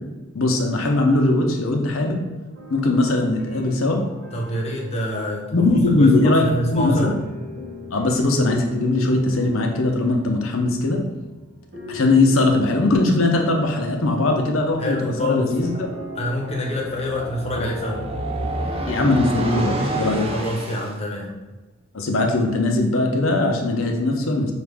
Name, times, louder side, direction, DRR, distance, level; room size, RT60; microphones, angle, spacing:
voice 1, 0.3-2.3 2.7-4.1 5.5-6.5 6.7-7.1 7.9-11.0 11.9-15.9 18.9-20.3 21.9-24.5, left 2 dB, 85° left, 2 dB, 0.6 m, -20 dB
sound 1, 1.8-18.2, left 1 dB, 65° right, 1.0 m, -40 dB
voice 2, 4.3-7.1 14.8-15.6 16.1-18.0 20.3-21.3, left 1 dB, 30° left, -2 dB, 0.9 m, -26 dB
sound 2, 15.5-21.0, right 1 dB, 30° right, 0.5 m, -29 dB
4.7 x 2.4 x 3.4 m, 1.1 s
head